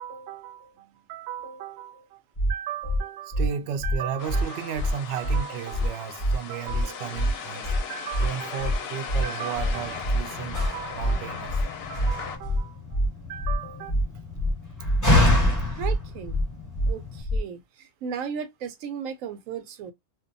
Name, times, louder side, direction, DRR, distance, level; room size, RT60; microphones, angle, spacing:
voice 1, 0.0-2.2 2.5-13.0 13.3-14.2, right 8 dB, 65° right, 0.7 m, -35 dB
sound 1, 2.4-2.5 2.8-3.0 3.3-3.5 3.8-4.0 4.3-4.4 4.8-4.9 5.2-5.4 5.7-5.9 6.2-6.4 6.7-6.8 7.2-7.3 7.6-7.8 8.1-8.3 8.6-8.8 9.1-9.2 9.6-9.7 10.0-10.2 10.5-10.7 11.0-11.2 11.5-11.6 12.0-12.1 12.4-12.6 12.9-13.1 13.4-13.6 13.9-14.0 14.4-14.5 14.8-15.0 15.3-15.5 15.8-16.0 16.3-16.4 16.8-16.9 17.2-17.4, equal, 35° left, 0.5 m, -24 dB
sound 2, 4.2-12.4, left 6 dB, 60° left, 0.8 m, -38 dB
Slam, 9.6-17.2, left 1 dB, 15° left, 1.1 m, -28 dB
voice 2, 15.7-16.4 16.9-19.9, right 7 dB, 85° right, 1.0 m, -35 dB
2.6 x 2.1 x 2.5 m
omnidirectional pair, 1.4 m